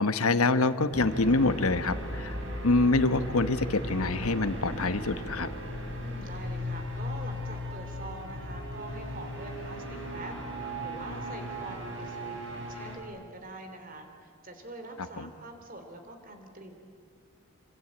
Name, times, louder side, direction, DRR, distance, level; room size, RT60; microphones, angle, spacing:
voice 1, 0.0-2.4 2.6-5.5 15.2-15.3, left 3 dB, 75° left, 11 dB, 1.2 m, -25 dB
sound 1, 0.9-13.0, equal, 55° right, 5.0 m, -37 dB
voice 2, 5.9-16.7, right 2 dB, 40° right, 5 dB, 3.4 m, -45 dB
27.0 x 25.0 x 8.7 m, 2.2 s
head